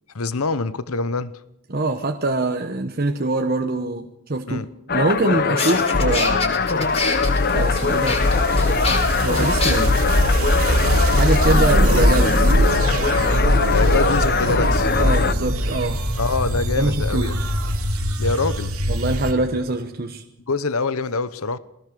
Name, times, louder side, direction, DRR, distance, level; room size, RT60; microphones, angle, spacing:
voice 1, 0.1-1.3 4.5-4.7 13.7-14.9 16.2-17.4 18.2-18.8 20.5-21.6, left 4 dB, 75° left, 16 dB, 0.9 m, -25 dB
voice 2, 1.7-4.6 4.9-6.6 7.5-8.3 8.7-9.9 10.9-12.5 15.0-16.0 16.8-17.4 18.9-20.2, right 2 dB, 45° right, 4 dB, 1.1 m, -24 dB
sound 1, 4.9-15.3, left 4 dB, 45° left, 0.9 m, -21 dB
sound 2, 5.1-5.2 5.6-9.7, left 3 dB, 30° left, 4.9 m, -27 dB
sound 3, 6.5-19.3, right 1 dB, 80° right, 3.0 m, -22 dB
21.5 x 18.0 x 6.8 m, 0.83 s
head